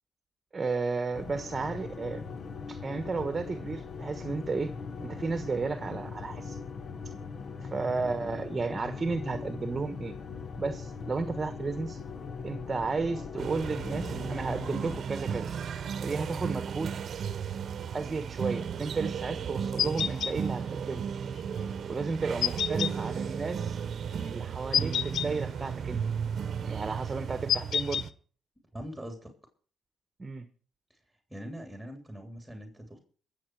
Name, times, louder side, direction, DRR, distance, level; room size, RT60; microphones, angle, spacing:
voice 1, 0.5-2.2 2.7-4.7 5.0-6.6 7.6-10.1 10.6-12.0 12.4-15.5 16.0-16.9 17.9-21.0 21.9-23.8 24.3-26.0 26.6-28.1 30.2-30.4, right 4 dB, 30° right, 10 dB, 1.3 m, -33 dB
sound 1, 1.1-15.0, left 5 dB, 50° left, 1.2 m, -40 dB
sound 2, 13.4-28.1, right 7 dB, 55° right, 0.9 m, -34 dB
sound 3, 19.8-20.3 22.4-22.9 24.7-25.3 27.5-28.0, left 8 dB, 65° left, 0.6 m, -28 dB
voice 2, 22.7-23.1 28.7-29.3 31.3-33.0, equal, 5° right, 4 dB, 3.3 m, -42 dB
22.5 x 7.5 x 4.7 m, 0.42 s
cardioid pair, 90°, 0 cm